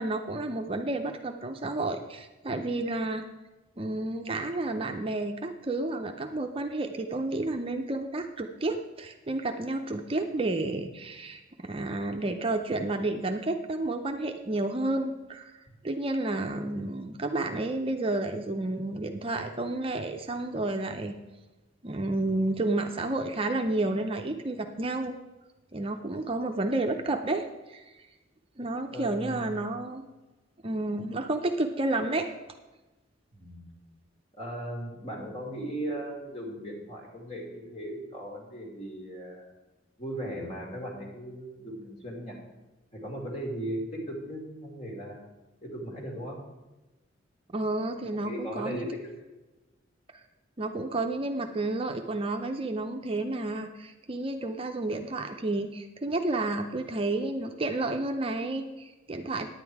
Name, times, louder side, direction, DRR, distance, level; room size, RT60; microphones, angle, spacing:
voice 1, 0.0-3.3 3.8-15.5 15.8-21.2 21.8-25.2 25.7-27.8 28.6-30.0 30.6-32.3 47.5-48.9 50.6-59.5, right 2 dB, 30° right, 4 dB, 0.6 m, -31 dB
voice 2, 28.9-29.5 33.3-33.6 34.3-39.5 40.0-42.4 42.9-45.2 45.6-46.4 48.2-49.0, right 1 dB, 35° left, -1 dB, 2.5 m, -37 dB
9.7 x 9.0 x 4.7 m, 1.1 s
head